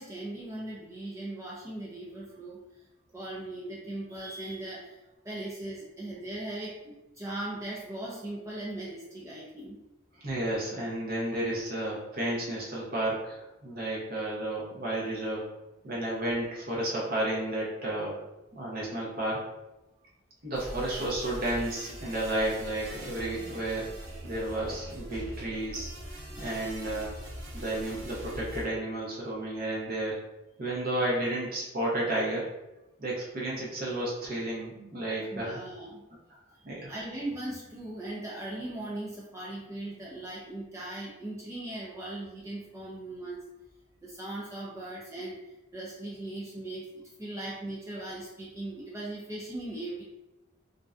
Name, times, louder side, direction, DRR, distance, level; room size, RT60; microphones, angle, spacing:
voice 1, 0.0-2.9 3.1-5.0 5.2-9.8 35.3-36.0 36.5-43.4 44.0-46.9 47.2-50.0, right 1 dB, 15° right, -5 dB, 0.3 m, -39 dB
voice 2, 10.2-15.4 15.8-18.1 18.5-19.5 20.4-23.9 24.2-25.9 26.4-27.1 27.5-30.2 30.6-32.5 33.0-35.6 36.6-36.9, right 1 dB, 45° right, -4 dB, 0.6 m, -32 dB
sound 1, 20.5-28.7, equal, 85° right, 0.7 m, -42 dB
2.5 x 2.1 x 2.3 m, 0.97 s
head